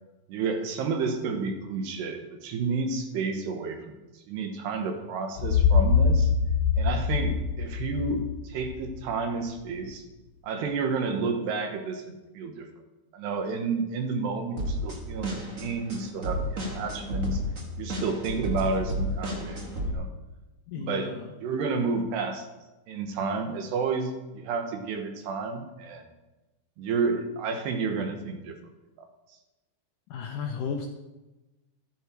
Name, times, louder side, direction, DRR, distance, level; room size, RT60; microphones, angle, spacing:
voice 1, 0.3-4.0 4.3-6.3 6.8-10.0 10.4-12.7 13.1-17.4 17.8-19.6 19.9-20.1 20.8-21.1 21.4-22.5 22.9-26.1 26.8-28.6 29.0-29.1, right 4 dB, 80° right, 5 dB, 3.5 m, -30 dB
sound 1, 5.4-9.2, left 6 dB, 40° left, 2.9 m, -24 dB
sound 2, 14.6-19.9, left 1 dB, 45° right, 1.0 m, -32 dB
voice 2, 20.7-21.3 30.1-30.9, left 6 dB, 75° left, 3 dB, 2.0 m, -34 dB
14.5 x 12.0 x 4.7 m, 1.1 s
omnidirectional pair, 4.8 m